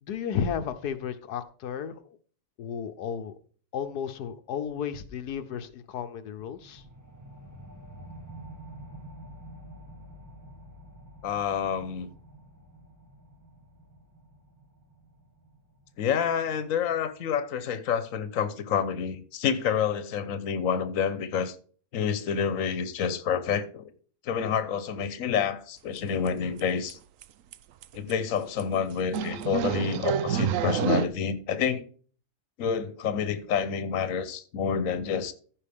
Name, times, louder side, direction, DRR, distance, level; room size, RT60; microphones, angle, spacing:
voice 1, 0.0-2.2 2.6-3.3 3.7-6.8, left 7 dB, 90° left, 1.4 m, -33 dB
sound 1, 6.4-17.5, right 1 dB, 15° right, 0.9 m, -48 dB
voice 2, 11.2-12.1 16.0-21.6 21.9-23.9 24.2-27.0 27.9-31.8 32.6-35.3, left 7 dB, 60° left, 1.3 m, -28 dB
sound 2, 26.0-26.1 26.3-26.6 26.9-27.0 27.2-27.3 27.5-27.6 27.8-28.1 28.6-28.7 29.1-31.1, right 9 dB, 65° right, 0.9 m, -28 dB
14.5 x 5.4 x 3.5 m
omnidirectional pair, 1.6 m